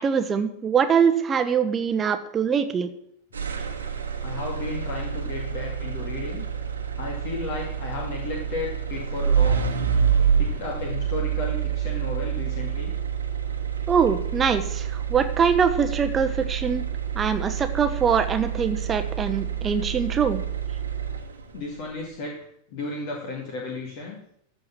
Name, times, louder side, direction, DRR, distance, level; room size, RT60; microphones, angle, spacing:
voice 1, 0.0-2.9 13.9-16.8 17.1-20.4, right 6 dB, 20° right, 8 dB, 1.1 m, -23 dB
sound 1, 3.3-21.6, right 8 dB, 70° right, 1.5 m, -27 dB
voice 2, 4.2-6.4 6.9-9.7 10.4-12.9 21.5-22.3 22.7-24.2, left 3 dB, 45° left, -1 dB, 2.3 m, -33 dB
14.0 x 4.7 x 7.4 m, 0.72 s
figure-of-eight pair, 90°, 0 cm